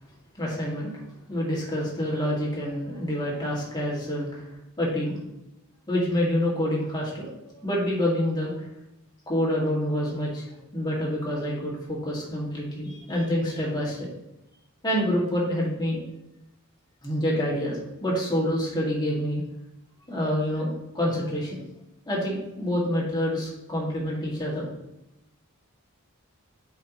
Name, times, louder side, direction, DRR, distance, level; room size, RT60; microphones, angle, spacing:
voice 1, 0.4-1.0 1.3-4.5 4.8-5.2 5.9-8.5 9.3-10.5 10.7-14.1 14.8-16.0 17.0-19.4 20.1-21.6 22.1-24.7, equal, 20° left, -5 dB, 2.2 m, -27 dB
8.1 x 4.9 x 3.1 m, 0.89 s
head